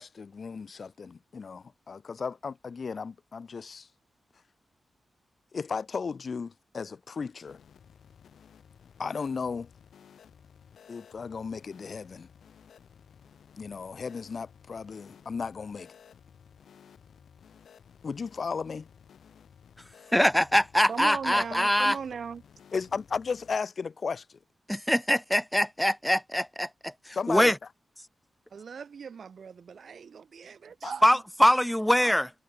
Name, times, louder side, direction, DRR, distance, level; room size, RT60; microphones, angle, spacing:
voice 1, 0.0-3.9 5.5-7.6 9.0-9.7 10.9-12.3 13.6-15.9 18.0-18.9 21.3-21.4 22.7-24.2 27.1-27.5 30.8-30.9, left 5 dB, 45° left, 1.0 m, -35 dB
sound 1, 7.5-23.6, left 8 dB, 90° left, 2.7 m, -55 dB
voice 2, 20.1-22.0 24.7-27.6 31.0-32.3, equal, 5° left, 0.3 m, -23 dB
voice 3, 20.9-22.4 28.5-31.1, right 6 dB, 55° right, 2.6 m, -38 dB
wide cardioid pair, 170°, 0 cm